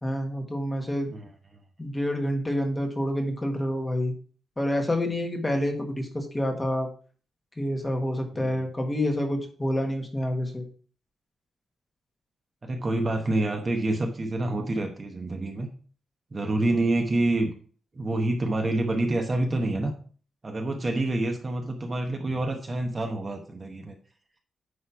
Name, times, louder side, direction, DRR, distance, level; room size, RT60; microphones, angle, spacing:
voice 1, 0.0-1.1 1.8-4.1 4.6-6.9 7.6-10.6, left 1 dB, 15° left, 2 dB, 1.5 m, -28 dB
voice 2, 12.7-15.7 16.3-17.5 17.9-19.9 20.4-23.9, right 2 dB, 25° right, 3 dB, 1.0 m, -27 dB
9.7 x 3.3 x 5.6 m, 0.43 s
wide cardioid pair, 155°, 0 cm